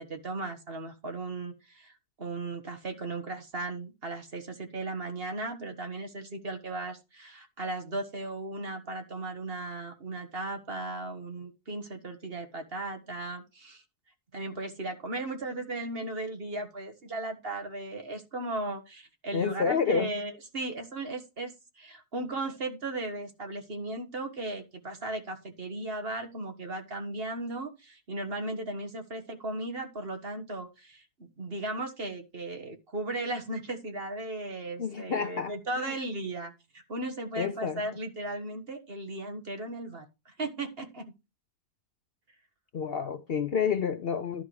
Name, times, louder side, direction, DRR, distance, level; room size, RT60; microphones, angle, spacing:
voice 1, 0.0-1.9 2.2-13.8 14.3-41.1, right 2 dB, 40° right, 1.6 m, -36 dB
voice 2, 19.3-20.1 34.8-35.9 37.4-37.8 42.7-44.4, left 6 dB, 60° left, 0.6 m, -29 dB
11.5 x 4.7 x 4.7 m
omnidirectional pair, 1.6 m